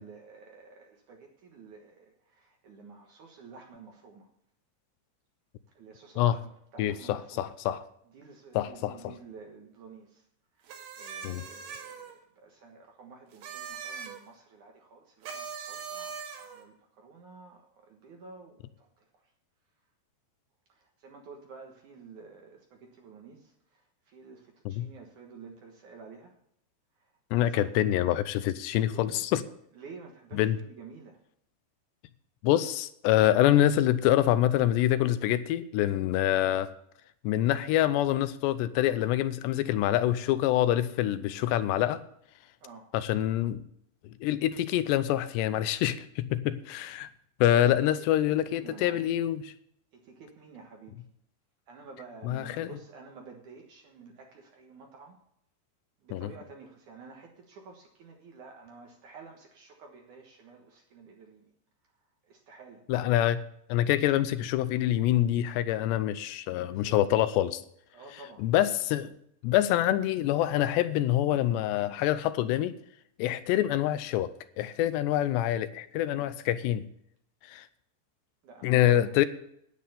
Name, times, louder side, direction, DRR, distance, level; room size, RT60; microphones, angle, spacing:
voice 1, 0.0-4.3 5.7-7.5 8.1-10.3 10.5-19.3 20.7-26.4 26.9-27.7 28.9-29.2 29.7-31.2 42.6-42.9 48.3-49.1 49.9-51.0 51.7-55.2 56.0-61.5 61.8-62.8 66.7-67.1 67.9-68.5 76.1-76.3 78.4-79.2, right 4 dB, 60° right, 2 dB, 2.3 m, -51 dB
voice 2, 6.8-7.8 8.6-9.0 11.2-11.4 24.7-24.9 27.3-29.4 30.4-30.6 32.4-36.7 37.2-42.0 42.9-43.6 44.2-47.1 47.4-49.5 52.3-52.7 56.1-56.3 62.9-63.4 63.7-67.6 68.4-69.1 69.4-72.8 73.2-76.9 77.4-77.7 78.6-79.3, left 13 dB, 80° left, 13 dB, 2.7 m, -26 dB
sound 1, 10.7-12.1 13.3-14.2 15.2-16.6, right 6 dB, 90° right, 4.2 m, -41 dB
10.5 x 9.5 x 6.8 m, 0.74 s
omnidirectional pair, 5.1 m